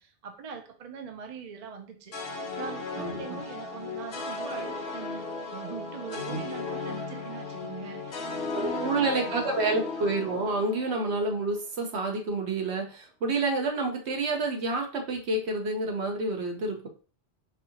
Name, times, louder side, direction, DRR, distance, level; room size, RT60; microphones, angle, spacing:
voice 1, 0.0-9.4, right 6 dB, 45° right, 5 dB, 0.6 m, -42 dB
sound 1, 2.1-11.4, left 3 dB, 60° left, 1.0 m, -36 dB
voice 2, 3.0-3.4 6.3-6.4 8.8-16.9, right 3 dB, 75° right, 3 dB, 1.1 m, -29 dB
4.7 x 2.7 x 2.8 m, 0.38 s
omnidirectional pair, 1.1 m